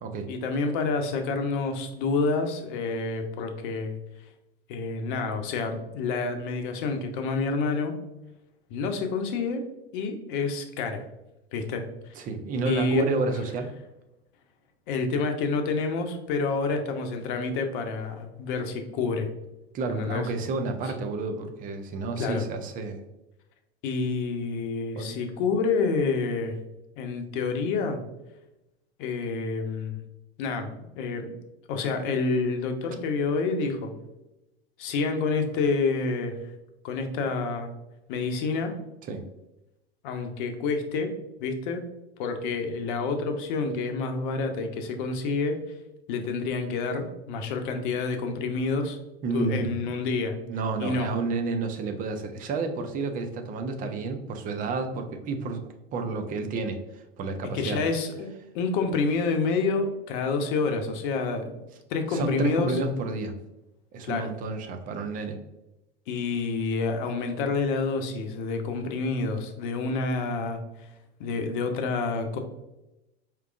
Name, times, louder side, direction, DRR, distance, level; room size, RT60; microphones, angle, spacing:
voice 1, 0.3-4.0 4.7-7.9 8.7-9.6 9.9-11.0 11.5-11.8 12.6-13.1 14.9-19.3 19.9-20.3 20.8-20.9 22.2-22.4 23.8-26.6 27.0-28.0 29.0-30.0 30.4-31.4 31.7-33.9 34.8-36.4 36.8-37.7 38.1-38.7 40.0-41.1 41.4-41.8 42.2-45.6 46.1-49.0 49.3-50.3 50.8-51.1 57.5-58.3 58.5-62.8 64.1-64.3 66.1-70.9 71.2-72.4, left 4 dB, 55° left, 5 dB, 0.8 m, -28 dB
voice 2, 12.2-13.7 19.7-23.0 25.0-25.2 39.1-39.2 49.2-49.9 50.5-55.6 55.9-57.8 62.1-63.4 63.9-65.4, right 3 dB, 25° right, 6 dB, 0.5 m, -30 dB
4.7 x 3.0 x 2.4 m, 0.95 s
hypercardioid pair, 90°, 32 cm